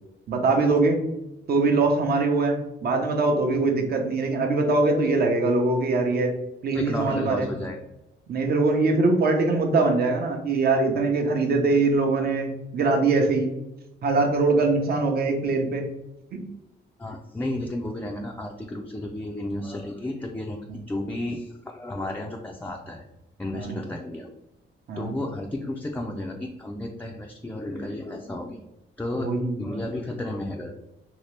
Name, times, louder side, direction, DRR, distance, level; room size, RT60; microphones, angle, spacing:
voice 1, 0.3-1.0 1.5-6.3 6.6-7.5 8.3-13.5 14.0-15.9 16.3-16.4 20.7-20.8 23.5-23.8 24.9-25.2 29.1-29.7, right 3 dB, 50° right, 3 dB, 0.7 m, -22 dB
voice 2, 6.7-7.8 17.0-20.6 20.9-23.0 23.4-24.3 25.0-28.6 29.0-30.7, left 1 dB, 10° left, 0 dB, 0.3 m, -32 dB
2.9 x 2.8 x 3.2 m, 0.90 s
cardioid pair, 90°, 20 cm